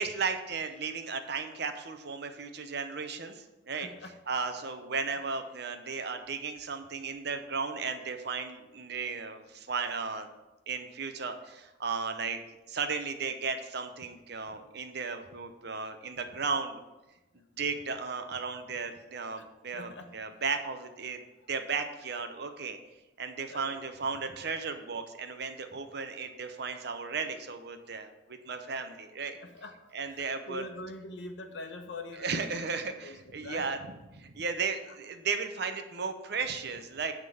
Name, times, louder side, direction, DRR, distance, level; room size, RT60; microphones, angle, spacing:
voice 1, 0.0-3.9 4.3-10.3 10.7-12.4 12.7-16.8 17.6-21.2 21.5-22.8 23.2-29.4 29.9-30.7 32.1-33.8 34.1-37.1, right 5 dB, 60° right, 7 dB, 0.8 m, -35 dB
voice 2, 3.8-4.2 17.3-17.6 19.4-19.5 19.7-20.4 23.5-23.9 29.3-32.6 32.9-33.7, left 2 dB, 70° left, 5 dB, 1.0 m, -44 dB
9.9 x 3.7 x 7.0 m, 1.0 s
head